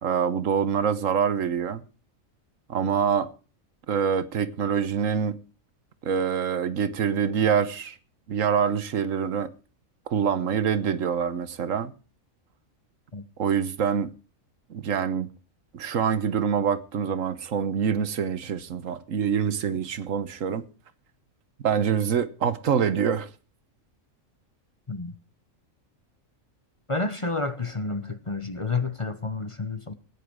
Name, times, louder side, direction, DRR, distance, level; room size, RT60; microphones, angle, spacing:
voice 1, 0.0-1.8 2.7-3.3 3.9-5.4 6.0-7.9 8.3-9.5 10.1-11.9 13.4-14.1 14.7-15.3 15.7-20.6 21.6-23.3, right 7 dB, 75° right, 1.4 m, -25 dB
voice 2, 26.9-29.9, left 3 dB, 25° left, 1.0 m, -30 dB
16.0 x 9.9 x 4.7 m
omnidirectional pair, 1.4 m